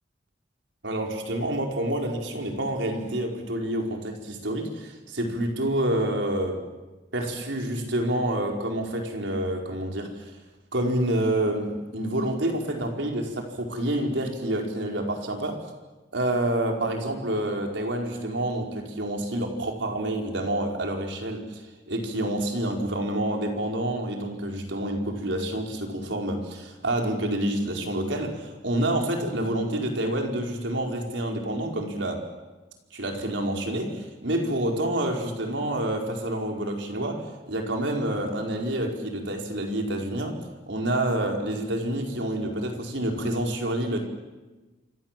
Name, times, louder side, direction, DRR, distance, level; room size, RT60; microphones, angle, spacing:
voice 1, 0.8-6.6 7.1-10.3 10.7-15.6 16.1-21.6 21.9-32.3 32.9-40.4 40.7-44.0, right 1 dB, 80° right, 2 dB, 4.6 m, -28 dB
28.0 x 25.5 x 7.6 m, 1.2 s
head